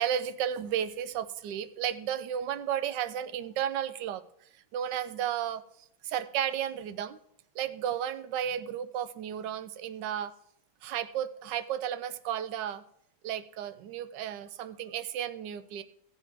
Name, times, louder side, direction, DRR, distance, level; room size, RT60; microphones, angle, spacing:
voice 1, 0.0-4.2 4.7-5.6 6.0-7.2 7.5-10.3 10.8-12.8 13.2-15.8, right 10 dB, 80° right, 13 dB, 1.3 m, -33 dB
16.5 x 7.2 x 3.4 m, 0.76 s
omnidirectional pair, 1.9 m